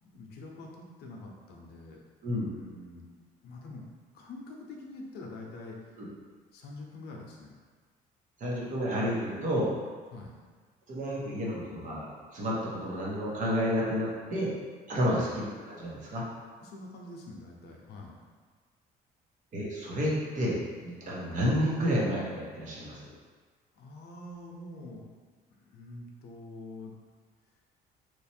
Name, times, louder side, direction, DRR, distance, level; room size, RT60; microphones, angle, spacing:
voice 1, 0.0-2.0 2.4-3.1 3.4-3.8 4.1-6.0 6.5-7.5 10.1-10.4 14.9-15.5 16.6-18.2 23.7-25.1 25.6-27.0, left 2 dB, 75° left, 0 dB, 0.7 m, -45 dB
voice 2, 2.2-2.5 6.0-6.1 8.4-9.7 10.9-14.5 14.9-16.3 19.5-20.6 20.8-23.0, equal, 50° right, -5 dB, 1.1 m, -30 dB
3.1 x 2.5 x 4.3 m, 1.5 s
cardioid pair, 110°, 17 cm